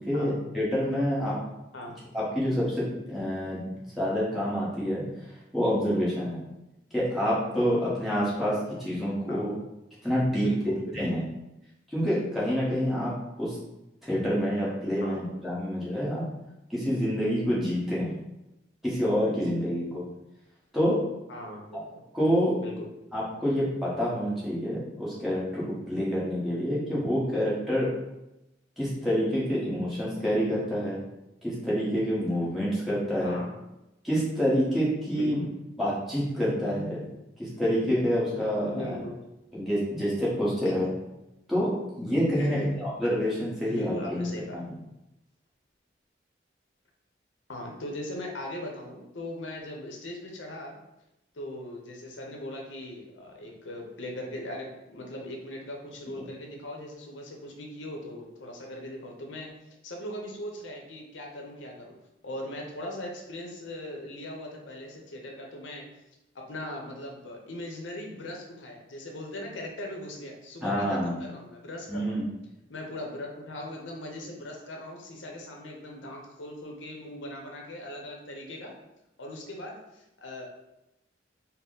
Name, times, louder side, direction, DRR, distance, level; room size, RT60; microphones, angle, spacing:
voice 1, 0.1-1.3 2.1-3.6 4.0-5.0 5.5-6.4 6.9-9.5 10.0-11.2 11.9-13.1 13.4-13.6 14.0-16.2 16.7-18.2 18.8-20.0 20.7-21.0 22.1-22.5 23.1-27.9 28.8-31.0 31.4-33.4 34.0-35.4 35.8-37.1 37.4-39.0 39.5-40.9 41.5-44.3 44.5-44.7 56.1-56.2 70.6-71.2 71.9-72.2, equal, ahead, -8 dB, 1.1 m, -27 dB
voice 2, 10.4-11.2 15.0-15.2 21.3-21.8 22.6-22.9 33.2-33.6 35.1-35.5 38.7-39.2 40.7-40.9 42.4-42.7 43.7-44.6 47.5-50.8 51.3-59.5 59.8-62.0 62.2-65.9 66.3-72.2 72.7-78.7 79.2-80.4, left 1 dB, 85° left, 1 dB, 0.7 m, -39 dB
4.2 x 2.0 x 3.8 m, 0.92 s
head